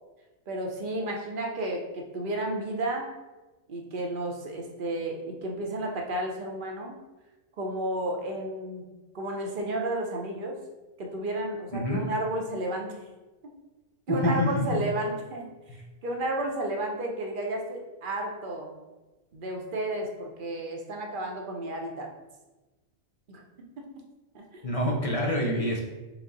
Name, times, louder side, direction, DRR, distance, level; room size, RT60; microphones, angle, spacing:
voice 1, 0.5-3.1 3.7-7.0 7.6-8.8 9.1-10.6 11.0-12.9 14.1-15.5 16.0-18.8 19.3-22.1 23.3-23.4 23.8-23.9 24.3-24.8, right 1 dB, 50° right, 1 dB, 0.7 m, -32 dB
voice 2, 11.7-12.1 14.1-14.8 24.6-25.8, left 1 dB, 55° left, -1 dB, 0.4 m, -27 dB
6.0 x 2.0 x 3.9 m, 1.2 s
omnidirectional pair, 1.4 m